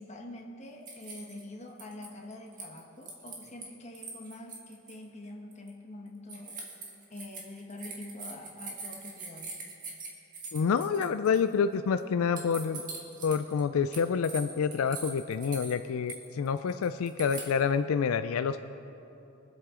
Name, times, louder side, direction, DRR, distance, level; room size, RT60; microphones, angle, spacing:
voice 1, 0.0-6.6 7.1-9.5, left 1 dB, 30° left, 1 dB, 1.2 m, -45 dB
sound 1, 0.9-1.4 1.8-3.7 3.9-5.0 5.5-5.7 6.3-11.5 12.0-12.1 12.4-13.6 13.9-17.5, right 4 dB, 40° right, 1.8 m, -42 dB
voice 2, 10.5-12.8 13.2-18.6, left 6 dB, 75° left, 10 dB, 0.4 m, -28 dB
23.5 x 8.1 x 3.8 m, 2.9 s
head